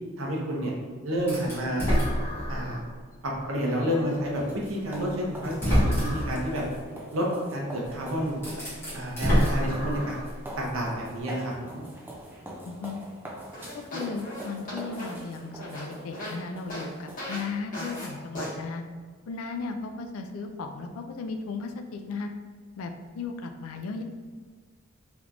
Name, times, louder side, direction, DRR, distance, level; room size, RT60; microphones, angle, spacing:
voice 1, 0.2-0.7 1.0-1.8 2.5-2.8 3.2-6.6 7.1-8.6 8.9-10.2 10.6-11.8, equal, 70° right, -2 dB, 0.7 m, -30 dB
sound 1, 1.3-2.9 3.4-3.5 4.8-4.9 5.4-6.4 7.8-7.9 8.3-10.3, equal, 10° left, 1.4 m, -26 dB
sound 2, 3.9-17.6, right 1 dB, 10° right, 0.3 m, -43 dB
voice 2, 12.7-13.0 13.7-18.8 19.3-22.3 22.8-24.0, left 4 dB, 85° left, 6 dB, 0.4 m, -36 dB
sound 3, 13.5-16.4 16.7-16.9 17.2-17.4 17.7-18.1 18.3-18.5, left 1 dB, 40° left, 1.5 m, -37 dB
3.3 x 3.0 x 2.5 m, 1.5 s
head